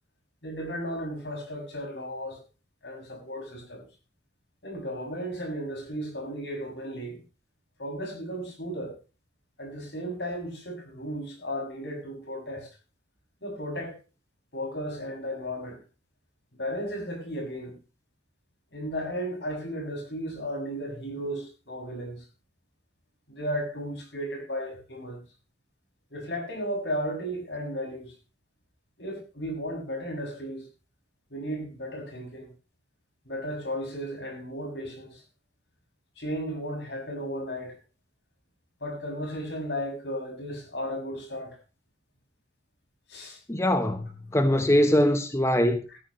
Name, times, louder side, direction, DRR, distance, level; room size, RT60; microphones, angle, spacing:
voice 1, 0.4-2.4 2.8-3.8 4.6-7.2 7.8-9.0 9.6-12.7 13.4-14.0 14.5-15.8 16.5-17.7 18.7-22.3 23.3-25.2 26.1-28.1 29.0-30.7 31.3-32.5 33.2-35.2 36.2-37.8 38.8-41.6 43.1-43.4 45.9-46.0, equal, 75° left, 6.6 m, -34 dB
voice 2, 43.5-45.8, left 1 dB, 15° left, 1.0 m, -22 dB
17.0 x 14.0 x 3.1 m
head